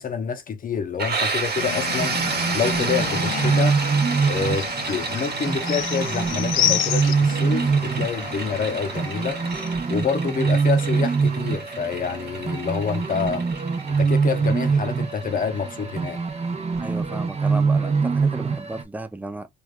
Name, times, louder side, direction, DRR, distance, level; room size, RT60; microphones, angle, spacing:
voice 1, 0.0-2.2 2.5-3.8 4.3-9.4 9.9-13.4 13.9-16.2, left 6 dB, 45° left, 0.7 m, -27 dB
sound 1, 1.0-16.6, right 4 dB, 55° right, 1.4 m, -31 dB
sound 2, 1.5-9.7, left 11 dB, 85° left, 0.4 m, -30 dB
sound 3, 2.0-18.8, right 5 dB, 30° right, 0.8 m, -24 dB
voice 2, 16.8-19.5, right 2 dB, 10° right, 0.5 m, -34 dB
3.3 x 2.3 x 2.4 m
cardioid pair, 90°, 20 cm